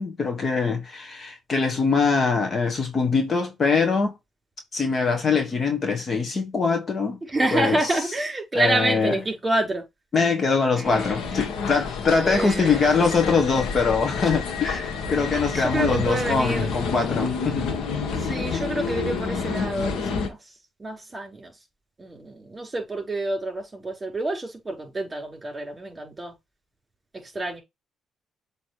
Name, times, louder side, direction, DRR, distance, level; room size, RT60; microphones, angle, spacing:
voice 1, 0.0-4.1 4.7-7.2 7.5-8.0 8.5-9.2 10.1-17.7, left 4 dB, 40° left, 1.4 m, -23 dB
voice 2, 7.3-9.8 10.8-10.9 12.2-12.8 15.5-16.7 18.2-20.4 20.8-21.5 22.0-26.3 27.3-27.6, right 2 dB, 20° right, 4.5 m, -28 dB
sound 1, 10.8-20.3, left 5 dB, 85° left, 1.5 m, -29 dB
7.5 x 3.2 x 4.8 m
cardioid pair, 90°, 0 cm